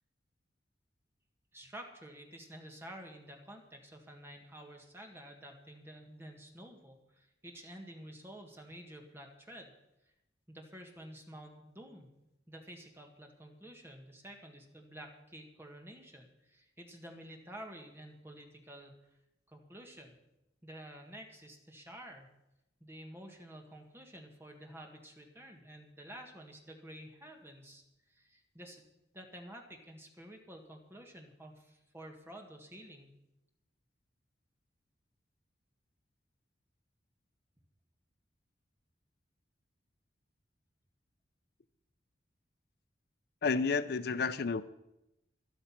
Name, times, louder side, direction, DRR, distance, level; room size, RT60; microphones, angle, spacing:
voice 1, 1.5-9.7 10.5-12.1 12.5-18.9 19.5-20.1 20.6-22.3 22.8-27.8 28.1-28.8 29.1-33.1, right 1 dB, 15° right, 1.9 m, -50 dB
voice 2, 43.4-44.6, left 4 dB, 60° left, 0.5 m, -30 dB
12.5 x 12.0 x 5.9 m
head